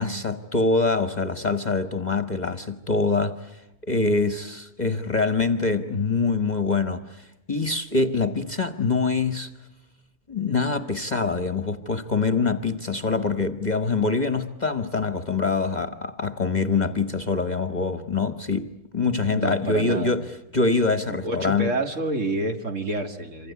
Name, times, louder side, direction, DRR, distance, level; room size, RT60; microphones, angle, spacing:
voice 1, 0.0-3.6 3.9-9.5 10.3-20.2 20.5-21.7, left 4 dB, 30° left, 1.2 m, -24 dB
voice 2, 19.3-20.2 21.1-23.5, right 2 dB, 55° right, 2.3 m, -28 dB
27.5 x 25.0 x 8.3 m
omnidirectional pair, 1.6 m